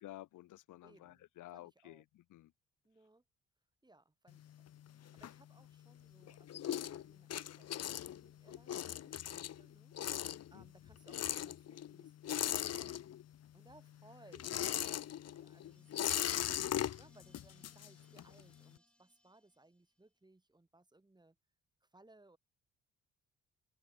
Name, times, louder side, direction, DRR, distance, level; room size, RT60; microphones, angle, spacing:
voice 1, 0.0-2.5 10.4-10.7, left 15 dB, 85° left, 2.4 m, -53 dB
voice 2, 0.8-1.3 1.5-2.0 2.8-3.2 3.8-12.9 13.5-16.5 17.0-21.4 21.8-22.4, right 2 dB, 15° right, 6.1 m, -65 dB
sound 1, 4.3-5.9 6.2-13.5 13.7-18.4, left 11 dB, 55° left, 1.0 m, -39 dB
sound 2, 14.7-20.1, equal, 5° left, 6.2 m, -71 dB
open air
cardioid pair, 90°, 30 cm